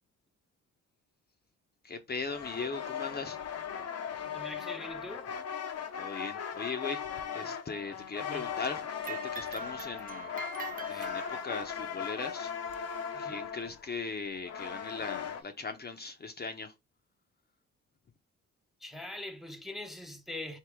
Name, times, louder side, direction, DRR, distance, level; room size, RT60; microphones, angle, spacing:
voice 1, 1.8-3.4 6.0-7.0 7.3-10.3 10.9-12.5 13.1-16.7, left 4 dB, 35° left, 0.8 m, -39 dB
sound 1, 2.3-15.4, left 7 dB, 55° left, 0.9 m, -38 dB
voice 2, 4.2-5.3 8.2-8.5 10.9-11.1 13.1-13.5 18.8-20.6, left 1 dB, ahead, 0.8 m, -43 dB
sound 2, 9.0-11.8 12.7-12.8 13.7-13.8 14.6-14.7, right 5 dB, 30° right, 0.5 m, -43 dB
4.6 x 2.9 x 3.4 m
cardioid pair, 90°, 30 cm